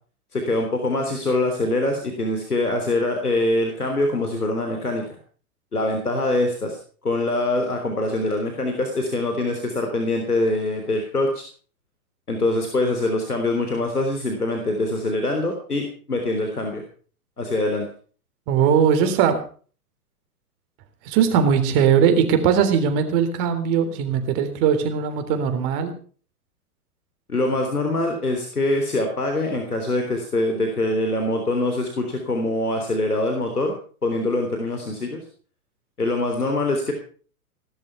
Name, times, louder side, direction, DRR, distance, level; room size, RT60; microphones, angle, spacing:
voice 1, 0.3-5.2 5.7-6.8 7.0-11.4 12.3-16.8 17.4-17.9 27.3-33.7 34.0-35.2 36.0-36.9, left 2 dB, 80° left, 4 dB, 3.6 m, -24 dB
voice 2, 18.5-19.4 21.0-25.9, right 7 dB, 35° right, 7 dB, 3.7 m, -19 dB
19.0 x 12.0 x 5.8 m, 0.43 s
figure-of-eight pair, 105°, 45 cm